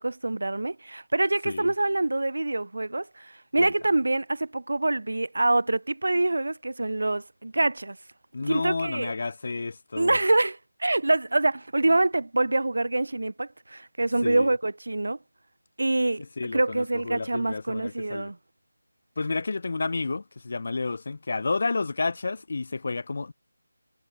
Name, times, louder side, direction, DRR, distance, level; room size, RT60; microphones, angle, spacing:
voice 1, 0.0-8.0 8.5-9.1 10.0-15.2 15.8-16.2 16.5-18.4, right 2 dB, 65° right, 2.9 m, -25 dB
voice 2, 8.3-10.2 14.2-14.5 16.2-18.3 19.2-23.3, left 3 dB, 50° left, 6.2 m, -31 dB
figure-of-eight pair, 165°, 0 cm